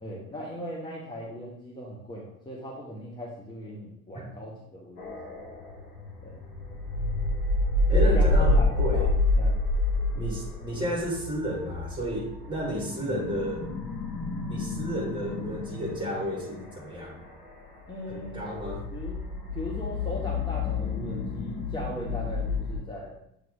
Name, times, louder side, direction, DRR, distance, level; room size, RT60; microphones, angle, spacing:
voice 1, 0.0-5.4 6.2-6.4 7.9-9.6 12.9-13.2 17.9-18.4 18.9-19.2 19.5-23.2, equal, 10° left, -3 dB, 1.1 m, -38 dB
sound 1, 5.0-22.8, left 2 dB, 75° left, 1.4 m, -29 dB
voice 2, 7.9-9.1 10.1-13.7 14.5-17.2 18.1-18.8, equal, 10° right, -1 dB, 2.2 m, -32 dB
7.3 x 3.3 x 3.8 m, 0.78 s
figure-of-eight pair, 60°, 46 cm